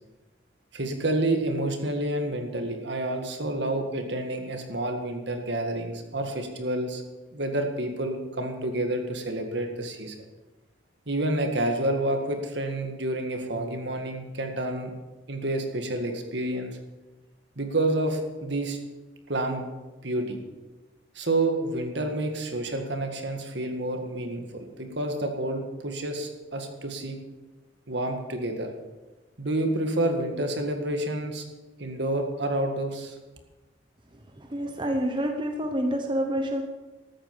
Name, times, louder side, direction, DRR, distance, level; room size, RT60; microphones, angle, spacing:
voice 1, 0.7-7.0 7.3-10.2 11.1-14.9 15.3-16.8 17.6-18.8 19.3-19.7 20.0-20.4 21.2-27.2 27.9-28.7 29.4-31.4 31.8-33.2, right 1 dB, 65° right, 4 dB, 1.9 m, -29 dB
voice 2, 34.4-36.6, equal, 25° right, 3 dB, 1.0 m, -28 dB
14.0 x 8.8 x 6.9 m, 1.2 s
head